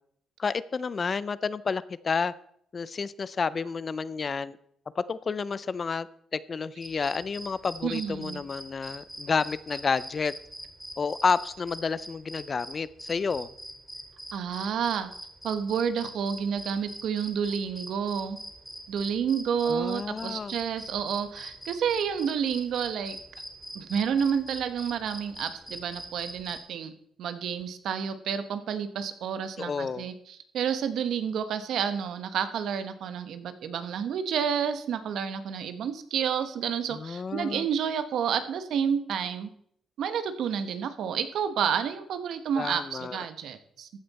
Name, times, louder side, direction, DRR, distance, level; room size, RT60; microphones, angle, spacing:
voice 1, 0.4-2.3 2.7-4.6 5.0-10.3 11.0-13.5 19.7-20.6 29.6-30.1 36.9-37.7 42.6-43.2, left 5 dB, 35° left, 17 dB, 0.5 m, -30 dB
sound 1, 6.8-26.6, equal, 5° right, 3.6 m, -43 dB
voice 2, 7.8-8.4 14.3-15.1 15.4-18.4 18.9-23.2 23.7-26.9 27.2-39.5 40.0-43.9, right 7 dB, 75° right, 10 dB, 1.1 m, -30 dB
14.5 x 9.2 x 4.2 m, 0.68 s
cardioid pair, 110°, 0 cm